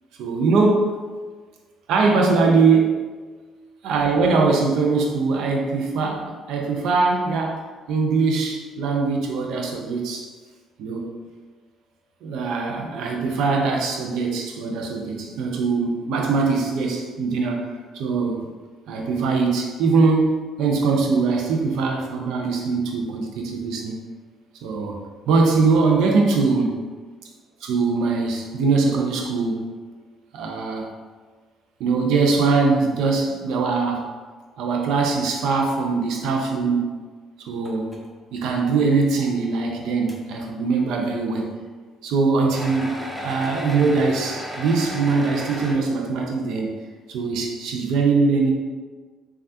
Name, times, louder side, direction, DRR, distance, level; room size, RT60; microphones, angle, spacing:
voice 1, 0.2-1.0 1.9-3.0 3.8-7.6 7.9-10.3 10.8-11.1 12.2-18.5 18.9-23.9 24.6-25.0 25.3-26.8 27.6-29.7 30.3-30.9 31.8-34.1 34.6-36.9 37.4-37.9 38.3-41.6 42.0-42.9 43.2-46.7 47.1-48.5, right 4 dB, 75° right, 2 dB, 0.4 m, -22 dB
sound 1, 37.6-38.1 38.5-38.6 39.3-39.4 40.1-40.2 42.5-45.7, equal, 10° right, 0.7 m, -34 dB
3.2 x 2.3 x 2.7 m, 1.4 s
hypercardioid pair, 55°, 0 cm